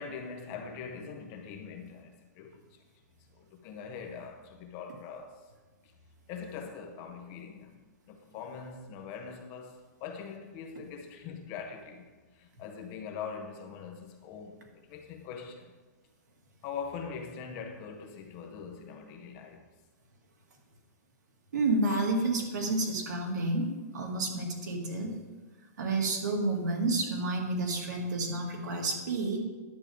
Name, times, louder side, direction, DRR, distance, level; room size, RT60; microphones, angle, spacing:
voice 1, 0.0-2.8 3.3-5.4 5.8-5.9 6.3-12.0 12.3-15.7 16.6-19.6, left 6 dB, 20° left, 0.6 m, -42 dB
voice 2, 21.5-25.1 25.8-29.4, right 2 dB, 85° right, 2.1 m, -30 dB
10.5 x 7.3 x 3.5 m
hypercardioid pair, 180°, 9 cm